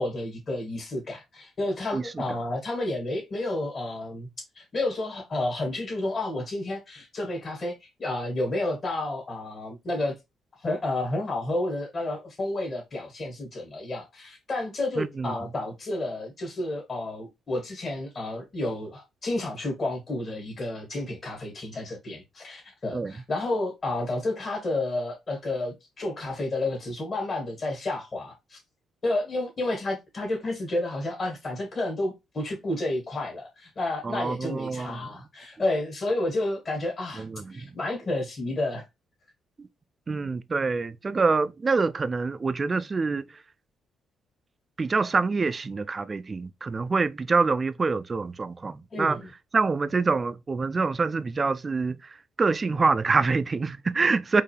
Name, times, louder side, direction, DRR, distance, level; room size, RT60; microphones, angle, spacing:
voice 1, 0.0-4.3 4.6-10.1 10.6-28.6 29.0-38.8 48.9-49.3, left 2 dB, 40° left, 2.0 m, -31 dB
voice 2, 15.0-15.3 22.9-23.1 34.0-35.1 37.2-37.7 39.6-39.7 40.1-43.2 44.8-49.2 49.5-52.0 52.4-54.4, right 4 dB, 30° right, 0.4 m, -26 dB
4.4 x 2.7 x 3.3 m
cardioid pair, 90°, 0 cm